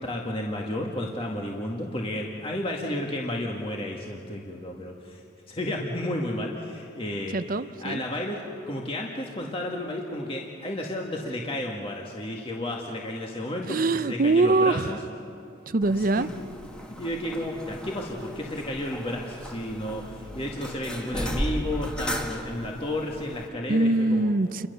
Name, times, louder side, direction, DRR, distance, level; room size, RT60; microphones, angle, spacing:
voice 1, 0.0-5.2 5.5-7.4 7.8-13.8 14.1-15.0 16.0-16.3 17.0-24.3, left 1 dB, 30° left, -1 dB, 1.8 m, -32 dB
voice 2, 7.3-8.0 13.7-15.0 15.7-16.3 23.7-24.7, right 2 dB, 45° right, 14 dB, 0.6 m, -23 dB
sound 1, 15.8-23.5, equal, 5° left, 1.8 m, -36 dB
29.5 x 23.5 x 6.9 m, 2.9 s
head